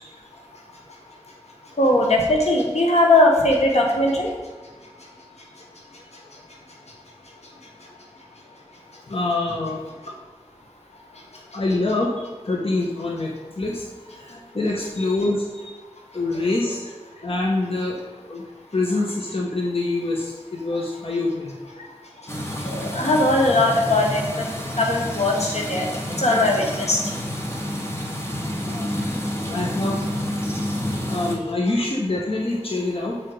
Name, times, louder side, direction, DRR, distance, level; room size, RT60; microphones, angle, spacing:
voice 1, 1.8-4.3 22.7-24.2 24.8-25.8 26.2-27.0, left 1 dB, 80° left, 0 dB, 1.5 m, -19 dB
voice 2, 9.1-9.9 11.5-15.5 16.1-16.9 17.2-18.4 18.7-21.5 28.6-29.1 29.5-30.0 31.1-33.2, left 2 dB, 60° left, -2 dB, 1.2 m, -25 dB
sound 1, 22.3-31.4, equal, 25° left, 1.6 m, -29 dB
7.7 x 4.9 x 4.7 m, 1.2 s
wide cardioid pair, 45°, 11 cm